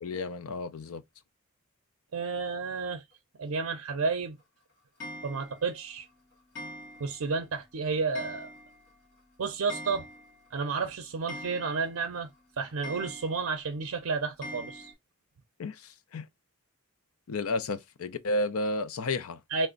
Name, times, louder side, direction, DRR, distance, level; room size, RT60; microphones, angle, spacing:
voice 1, 0.0-1.0 15.6-16.2 17.3-19.4, left 2 dB, 75° left, 0.4 m, -32 dB
voice 2, 2.1-3.0 3.4-4.4 5.2-6.1 7.0-8.5 9.4-10.0 10.5-12.3 12.6-14.9 19.5-19.7, right 4 dB, 70° right, 0.5 m, -31 dB
Clock, 5.0-5.7 6.6-7.3 7.6-7.7 8.1-8.9 9.2-9.3 9.5-10.5 10.8-10.9 11.3-12.1 12.8-13.6 14.4-14.9, equal, 50° left, 1.6 m, -43 dB
3.3 x 2.1 x 3.7 m
head